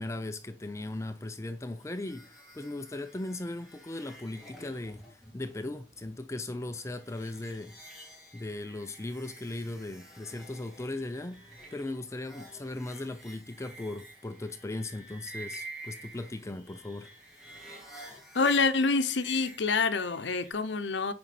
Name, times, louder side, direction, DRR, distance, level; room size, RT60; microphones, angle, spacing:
voice 1, 0.0-7.8 8.3-17.1, left 2 dB, 15° left, 0.5 m, -38 dB
sound 1, 1.7-20.5, right 2 dB, ahead, 3.2 m, -50 dB
voice 2, 18.3-21.1, left 4 dB, 90° left, 0.8 m, -27 dB
9.1 x 5.2 x 4.2 m
head